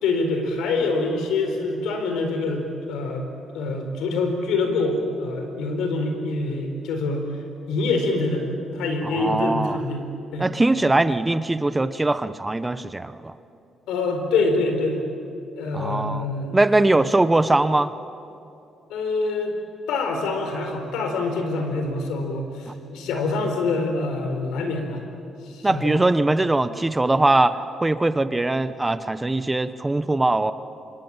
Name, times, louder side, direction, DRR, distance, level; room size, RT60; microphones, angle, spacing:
voice 1, 0.0-3.3 3.5-7.3 7.7-10.1 10.3-10.5 13.9-15.0 15.6-16.9 18.9-19.5 19.9-25.0 25.4-26.4, left 3 dB, 90° left, 5 dB, 4.4 m, -25 dB
voice 2, 9.0-9.8 10.4-13.3 15.7-16.3 16.5-17.9 25.6-30.5, right 2 dB, 15° right, 13 dB, 0.9 m, -21 dB
26.0 x 25.0 x 9.0 m, 2.6 s
cardioid pair, 90°, 0 cm